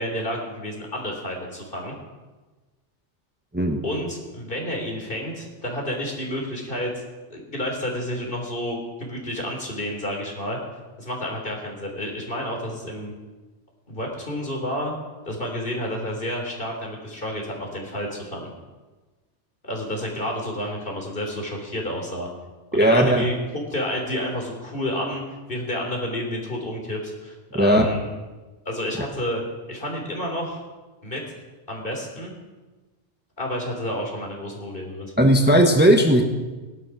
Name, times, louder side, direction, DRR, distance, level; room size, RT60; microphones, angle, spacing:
voice 1, 0.0-1.9 3.8-6.9 7.3-10.6 11.0-13.1 13.9-14.9 15.3-18.5 19.6-22.3 22.7-23.3 23.7-25.2 25.5-28.1 28.7-29.4 29.7-30.6 31.0-31.2 31.7-32.3 33.4-35.1, equal, 50° left, 0 dB, 3.7 m, -30 dB
voice 2, 22.7-23.3 27.5-27.8 35.2-36.2, right 1 dB, 10° right, 3 dB, 1.2 m, -16 dB
18.0 x 11.5 x 6.1 m, 1.2 s
omnidirectional pair, 1.2 m